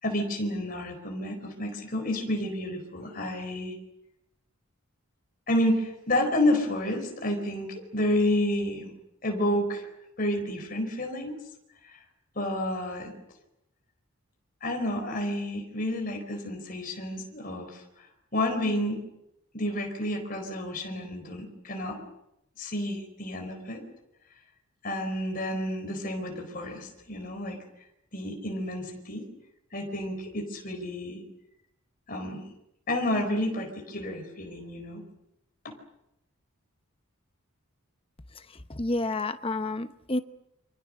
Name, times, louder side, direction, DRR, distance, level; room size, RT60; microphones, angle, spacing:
voice 1, 0.0-3.7 5.5-8.9 9.2-9.8 10.2-11.4 11.8-12.0 12.3-13.1 14.6-18.1 18.3-19.0 19.5-22.0 22.6-23.8 24.8-27.6 28.1-29.3 29.7-31.2 32.1-32.4 32.9-35.0 35.6-35.7, left 1 dB, 40° left, 3 dB, 4.4 m, -30 dB
voice 2, 38.3-40.2, left 2 dB, 25° left, 10 dB, 0.9 m, -30 dB
29.0 x 25.5 x 6.5 m, 0.84 s
head